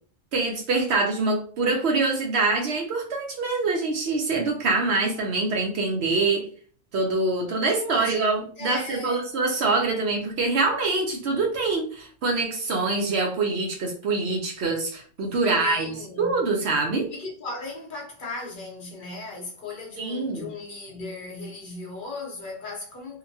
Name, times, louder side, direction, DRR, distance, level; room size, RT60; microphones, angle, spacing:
voice 1, 0.3-6.5 6.9-17.1 20.0-20.5, right 3 dB, 65° right, 0.8 m, -25 dB
voice 2, 7.8-9.3 15.4-16.4 17.1-23.2, left 3 dB, 45° left, 0.8 m, -37 dB
2.8 x 2.2 x 2.6 m
omnidirectional pair, 1.3 m